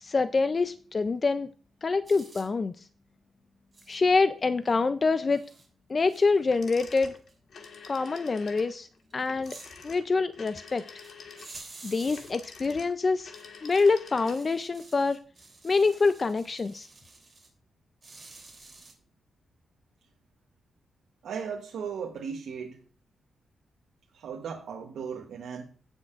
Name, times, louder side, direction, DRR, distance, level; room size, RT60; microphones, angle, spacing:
voice 1, 0.0-1.5 1.8-2.7 3.9-5.4 5.9-7.1 7.9-8.9 9.1-9.6 9.8-10.8 11.8-13.3 13.6-15.2 15.6-16.9, left 4 dB, 30° left, 12 dB, 0.3 m, -25 dB
sound 1, 2.1-2.5 3.7-4.0 4.7-4.8 5.3-5.7 6.1-6.9 7.2-7.3 7.7-7.8 9.1-9.7 11.0-11.1 11.4-12.3 13.3-13.9 14.2-17.5 18.0-18.9, right 3 dB, 25° right, 3.0 m, -50 dB
sound 2, 6.5-14.6, left 5 dB, 60° left, 1.5 m, -47 dB
voice 2, 21.2-22.8 24.1-25.7, right 6 dB, 90° right, 1 dB, 1.0 m, -36 dB
17.5 x 6.3 x 2.4 m, 0.41 s
wide cardioid pair, 135°, 0 cm